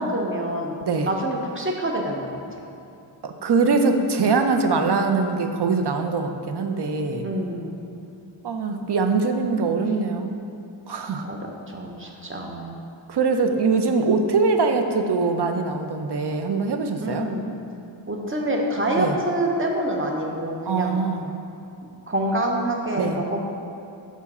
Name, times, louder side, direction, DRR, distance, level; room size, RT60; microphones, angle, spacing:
voice 1, 0.0-0.8 1.1-2.4 7.2-7.8 11.2-11.4 11.7-12.8 17.0-17.4 18.1-21.0 22.1-23.4, right 1 dB, 25° right, 0 dB, 0.8 m, -26 dB
voice 2, 0.8-1.1 3.2-7.3 8.4-10.4 10.9-11.4 13.1-17.3 19.0-19.1 20.7-21.3 23.0-23.2, right 4 dB, 60° right, 5 dB, 0.6 m, -22 dB
5.8 x 4.7 x 4.1 m, 2.7 s
wide cardioid pair, 45°, 47 cm